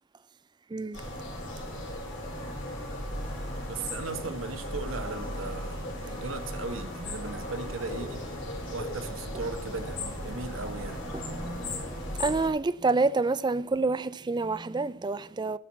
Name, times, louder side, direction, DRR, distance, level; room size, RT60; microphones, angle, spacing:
voice 1, 0.7-1.0 11.1-15.6, right 3 dB, 20° right, 0.3 m, -28 dB
sound 1, 0.9-12.5, left 1 dB, 60° left, 4.1 m, -36 dB
voice 2, 3.7-8.2 8.7-11.0, right 3 dB, 65° right, 1.0 m, -37 dB
12.0 x 6.2 x 7.1 m
head